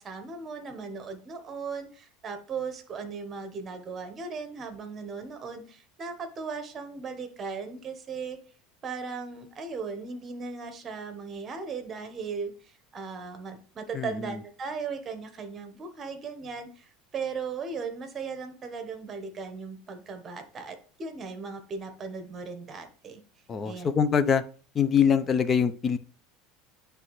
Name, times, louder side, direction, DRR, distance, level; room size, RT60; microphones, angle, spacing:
voice 1, 0.0-8.4 8.8-23.2 23.6-23.9, right 5 dB, 30° right, 8 dB, 1.1 m, -37 dB
voice 2, 13.9-14.4 23.5-24.4 24.7-26.0, left 7 dB, 30° left, 12 dB, 0.5 m, -24 dB
9.3 x 3.3 x 3.1 m, 0.41 s
supercardioid pair, 120°, 0 cm